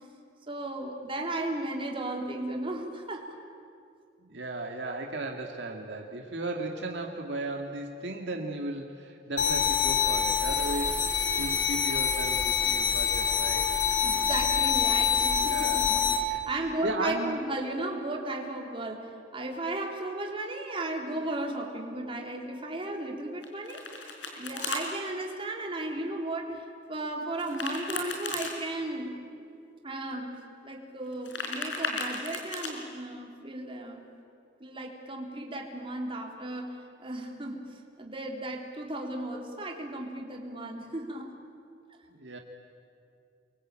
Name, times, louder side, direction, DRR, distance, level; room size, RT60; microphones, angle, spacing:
voice 1, 0.5-3.3 14.0-19.0 19.3-23.8 24.4-29.2 29.8-34.0 34.6-37.7 38.0-41.3, right 2 dB, 30° right, 1 dB, 3.4 m, -35 dB
voice 2, 4.2-13.7 15.4-15.9 16.3-17.4 42.1-42.4, right 2 dB, 70° right, 2 dB, 2.0 m, -36 dB
sound 1, 9.4-16.2, left 7 dB, 70° left, 3.3 m, -26 dB
Domestic sounds home sounds, 23.4-24.8 27.4-28.5 31.1-32.7, left 3 dB, 90° left, 5.1 m, -35 dB
28.5 x 23.0 x 8.9 m, 2.3 s
head